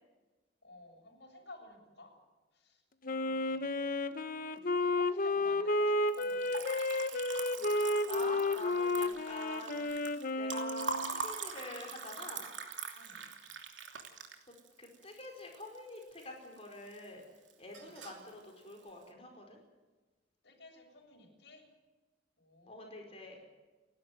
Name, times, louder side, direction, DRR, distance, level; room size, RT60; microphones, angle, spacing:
voice 1, 0.6-2.1 2.5-4.3 4.6-6.7 13.0-13.3 17.7-18.0 20.4-21.7 22.4-23.3, left 2 dB, 65° left, 2 dB, 7.3 m, -55 dB
Wind instrument woodwind instrument, 3.0-11.2, left 2 dB, 50° left, 1.2 m, -32 dB
Liquid, 6.0-16.2 16.6-17.2 17.5-18.3, right 4 dB, 80° right, 2.9 m, -43 dB
voice 2, 8.1-9.9 10.3-12.4 14.8-17.2 17.6-19.6 22.7-23.5, left 2 dB, 35° left, 2 dB, 4.7 m, -46 dB
29.5 x 12.0 x 9.3 m, 1.2 s
head